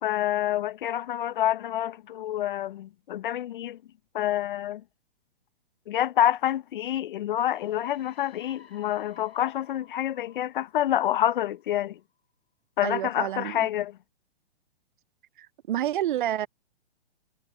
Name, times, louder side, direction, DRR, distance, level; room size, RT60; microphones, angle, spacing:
voice 1, 0.0-3.8 4.1-4.8 5.9-12.0 12.8-14.0, left 12 dB, 55° left, 1.3 m, -27 dB
sound 1, 7.5-12.0, left 7 dB, 75° left, 6.2 m, -55 dB
voice 2, 12.8-13.7 15.4-16.5, right 12 dB, 50° right, 0.8 m, -29 dB
figure-of-eight pair, 120°, 32 cm